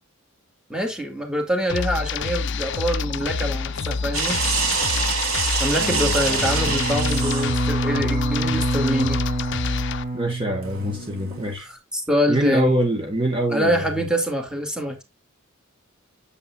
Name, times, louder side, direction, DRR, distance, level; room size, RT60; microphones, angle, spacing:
voice 1, 0.7-4.4 5.6-9.2 11.6-12.7 13.5-15.0, equal, 5° right, 2.1 m, -25 dB
sound 1, 1.7-10.0, left 5 dB, 55° left, 0.6 m, -27 dB
sound 2, 4.1-7.6 10.6-11.5, right 5 dB, 75° right, 3.1 m, -26 dB
voice 2, 5.8-6.8 10.1-11.7 12.3-13.8, right 1 dB, 25° right, 1.3 m, -25 dB
Bowed string instrument, 6.4-11.2, right 2 dB, 45° right, 2.4 m, -27 dB
8.6 x 8.4 x 2.3 m
head